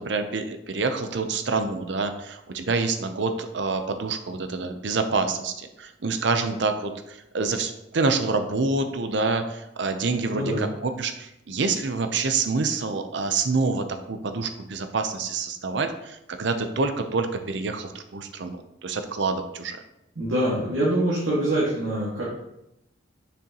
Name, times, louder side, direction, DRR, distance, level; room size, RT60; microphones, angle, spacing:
voice 1, 0.0-19.8, right 4 dB, 65° right, 7 dB, 0.6 m, -27 dB
voice 2, 20.2-22.2, right 1 dB, 85° right, -7 dB, 1.9 m, -24 dB
6.9 x 6.1 x 2.9 m, 0.84 s
head